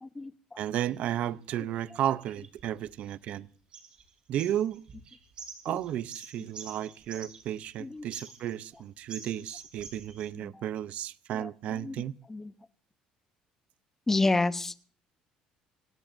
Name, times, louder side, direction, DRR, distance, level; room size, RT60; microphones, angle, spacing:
voice 1, 0.0-0.6 5.7-5.8 6.4-6.5 7.8-8.1 10.3-10.6 11.3-12.5 14.1-14.9, left 2 dB, 15° left, 0.9 m, -31 dB
voice 2, 0.6-3.5 4.3-4.8 5.6-12.1, right 11 dB, 60° right, 0.6 m, -33 dB
sound 1, 0.9-1.2 1.9-3.4 3.7-4.1 4.4-7.7 8.1-8.8 9.1-10.3, right 5 dB, 40° right, 5.1 m, -46 dB
26.0 x 17.5 x 2.6 m
cardioid pair, 120°, 3 cm